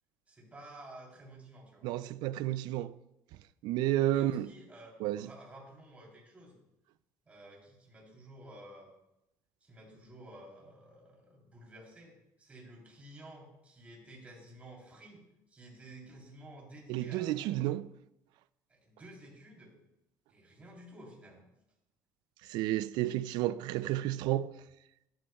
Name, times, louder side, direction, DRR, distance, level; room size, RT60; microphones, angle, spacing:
voice 1, 0.3-1.9 4.1-6.6 7.2-8.9 9.6-15.2 15.5-17.8 18.7-19.7 20.3-21.4, right 1 dB, 20° right, 3.4 m, -52 dB
voice 2, 1.8-2.9 3.6-4.5 5.0-5.3 16.9-17.8 22.5-24.6, right 14 dB, 80° right, 0.4 m, -31 dB
13.5 x 11.5 x 2.3 m
cardioid pair, 145°, 7 cm